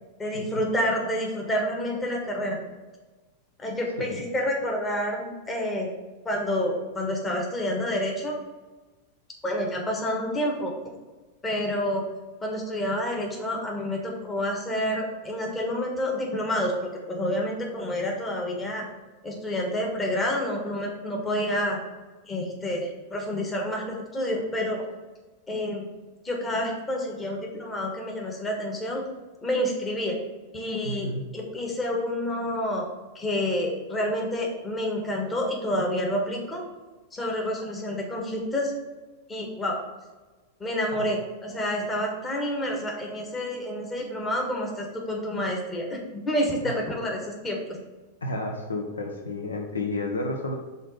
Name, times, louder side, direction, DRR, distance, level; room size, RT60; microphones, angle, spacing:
voice 1, 0.2-2.6 3.6-5.9 6.2-8.4 9.4-10.7 11.4-12.1 12.4-18.9 19.2-21.8 22.2-24.8 25.5-25.9 26.2-29.0 29.4-30.2 30.5-32.9 33.1-36.6 37.1-38.7 39.3-39.8 40.6-46.0 46.2-47.8, equal, 15° left, 0 dB, 1.4 m, -28 dB
voice 2, 30.8-31.2 41.0-41.1 46.6-46.8 48.2-50.5, left 2 dB, 75° left, 3 dB, 0.7 m, -31 dB
5.2 x 4.0 x 5.3 m, 1.2 s
figure-of-eight pair, 90°, 0 cm